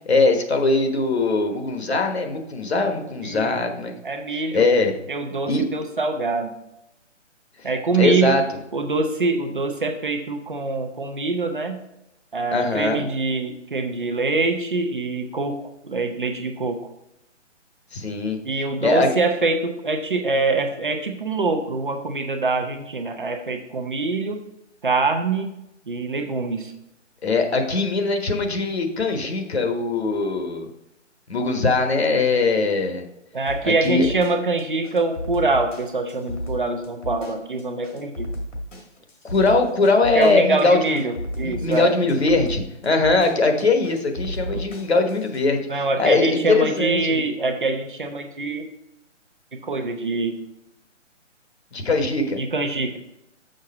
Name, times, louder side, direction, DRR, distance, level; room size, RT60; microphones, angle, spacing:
voice 1, 0.1-4.0 4.5-4.9 5.5-5.6 7.9-8.4 12.5-13.0 17.9-18.4 18.8-19.1 27.2-30.7 31.3-33.0 33.6-34.1 39.3-41.0 41.4-47.2 51.7-52.4, left 3 dB, 60° left, 5 dB, 1.2 m, -21 dB
voice 2, 3.2-3.6 4.0-4.6 5.1-6.5 7.6-8.4 8.7-11.8 12.3-16.9 18.4-24.4 24.8-25.5 25.9-26.7 33.3-38.3 40.1-41.9 44.5-44.6 45.7-48.7 49.5-50.4 52.4-53.0, right 3 dB, 45° right, 5 dB, 0.8 m, -24 dB
sound 1, 33.5-45.4, equal, 80° left, 2.0 m, -34 dB
6.5 x 5.8 x 4.2 m, 0.84 s
hypercardioid pair, 180°, 37 cm